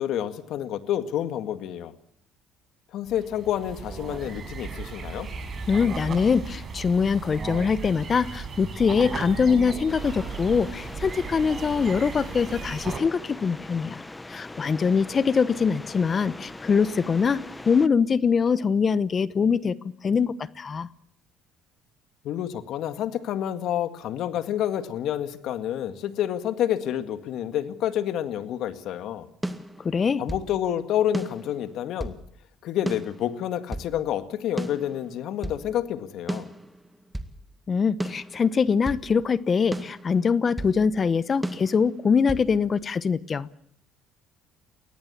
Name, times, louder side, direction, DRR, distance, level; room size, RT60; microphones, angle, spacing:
voice 1, 0.0-1.9 2.9-5.3 22.2-29.3 30.2-32.2 32.6-36.5, left 11 dB, 65° left, 10 dB, 1.8 m, -29 dB
sound 1, 3.1-13.0, right 4 dB, 40° right, 6.1 m, -36 dB
voice 2, 5.7-14.0 14.3-19.8 20.0-20.9 29.8-30.2 37.7-43.6, left 5 dB, 35° left, 18 dB, 0.9 m, -23 dB
sound 2, 9.9-17.9, left 2 dB, 15° left, 1.1 m, -41 dB
sound 3, 29.4-30.5 31.1-32.2 32.9-33.9 34.6-35.6 36.3-37.4 38.0-39.0 39.7-40.8 41.4-42.5, right 1 dB, 5° right, 2.0 m, -34 dB
23.0 x 17.5 x 8.5 m, 0.72 s
supercardioid pair, 80°, 0 cm